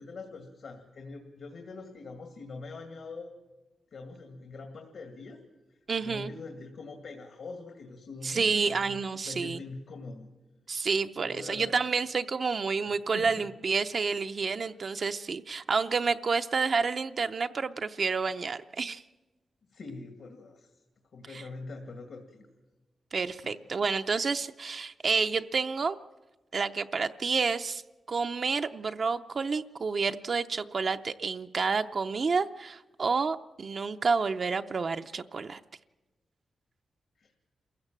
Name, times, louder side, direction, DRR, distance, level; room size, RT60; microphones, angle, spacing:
voice 1, 0.0-3.3 3.9-5.4 5.7-9.0 9.2-10.3 11.2-11.8 12.9-13.5 14.6-14.7 19.7-20.7 21.1-22.4 23.4-23.6 37.2-37.3, left 3 dB, 70° left, 4 dB, 2.2 m, -44 dB
voice 2, 5.9-6.3 8.2-9.6 10.7-19.0 21.3-21.4 23.1-26.0 26.5-27.8 28.1-35.6, right 5 dB, 50° right, 8 dB, 0.6 m, -29 dB
27.5 x 15.5 x 7.5 m, 1.2 s
cardioid pair, 100°, 0 cm